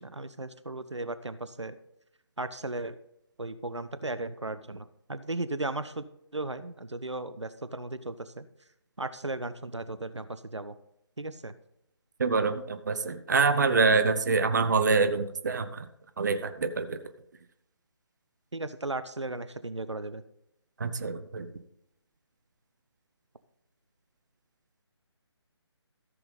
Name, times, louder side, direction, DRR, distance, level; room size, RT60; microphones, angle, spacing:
voice 1, 0.0-1.7 2.4-2.9 3.4-6.0 6.3-8.5 9.0-10.7 11.2-11.5 18.5-20.2, right 2 dB, 80° right, 13 dB, 0.7 m, -36 dB
voice 2, 12.2-15.9 16.2-17.0 20.8-21.5, right 4 dB, 40° right, 10 dB, 0.7 m, -26 dB
14.0 x 6.8 x 4.0 m, 0.78 s
figure-of-eight pair, 150°, 15 cm